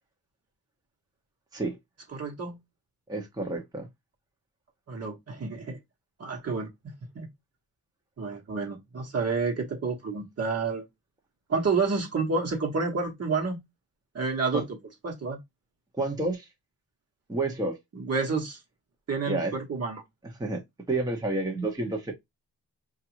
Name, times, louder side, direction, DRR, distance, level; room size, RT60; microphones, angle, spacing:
voice 1, 2.1-2.6 4.9-5.8 6.2-6.7 7.1-7.3 8.2-10.8 11.5-13.6 14.1-14.6 15.0-15.4 17.9-18.6 19.1-20.0, right 4 dB, 45° right, 1.2 m, -29 dB
voice 2, 3.1-3.9 14.5-14.6 16.0-16.5 17.3-17.8 19.3-19.5 20.4-20.6 20.9-22.1, right 2 dB, 10° right, 0.8 m, -29 dB
4.5 x 2.5 x 2.9 m
cardioid pair, 110°, 36 cm